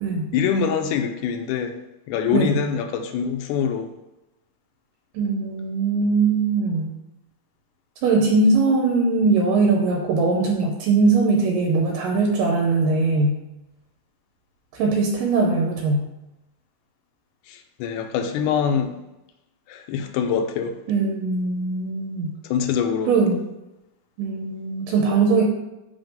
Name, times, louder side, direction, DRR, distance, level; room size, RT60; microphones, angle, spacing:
voice 1, 0.3-1.8 2.1-3.9 17.5-19.0 19.7-20.8 22.4-23.2, left 7 dB, 80° left, 5 dB, 2.0 m, -24 dB
voice 2, 5.1-6.9 8.0-13.4 14.7-16.0 20.9-22.3 23.1-23.4 24.2-25.4, right 3 dB, 85° right, 0 dB, 2.4 m, -20 dB
5.2 x 3.7 x 5.2 m, 0.95 s
omnidirectional pair, 3.8 m